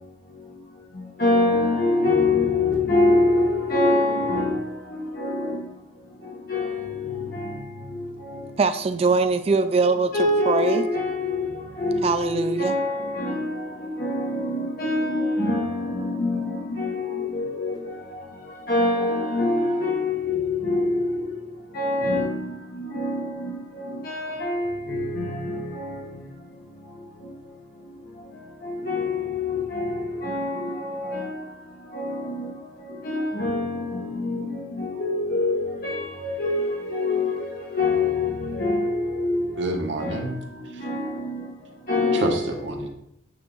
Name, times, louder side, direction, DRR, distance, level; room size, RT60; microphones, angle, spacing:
voice 1, 1.2-5.6 6.5-7.6 7.9-8.0 8.3-8.4 10.1-18.2 18.7-21.3 21.7-26.0 28.6-31.4 31.9-32.5 33.0-39.4 40.0-40.3 40.8-41.4 41.9-42.4, left 2 dB, 50° left, 1.3 m, -25 dB
voice 2, 8.6-10.1 10.5-10.9 12.0-12.7, right 4 dB, 30° right, 0.3 m, -22 dB
voice 3, 39.6-40.4 40.7-40.8 42.1-42.9, right 1 dB, 75° right, 1.1 m, -28 dB
8.6 x 3.7 x 3.9 m
head